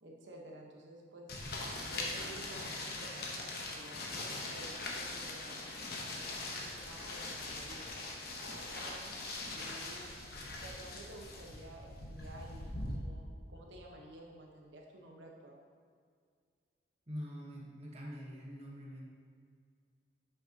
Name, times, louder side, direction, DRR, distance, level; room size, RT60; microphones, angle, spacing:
voice 1, 0.0-1.4 1.7-5.6 6.1-7.9 8.4-10.1 10.6-15.6, right 1 dB, 80° right, 0 dB, 1.2 m, -53 dB
sound 1, 1.3-12.9, left 2 dB, 55° left, 1.0 m, -42 dB
voice 2, 17.1-19.0, equal, 35° right, -3 dB, 1.3 m, -44 dB
8.5 x 6.1 x 2.9 m, 2.1 s
head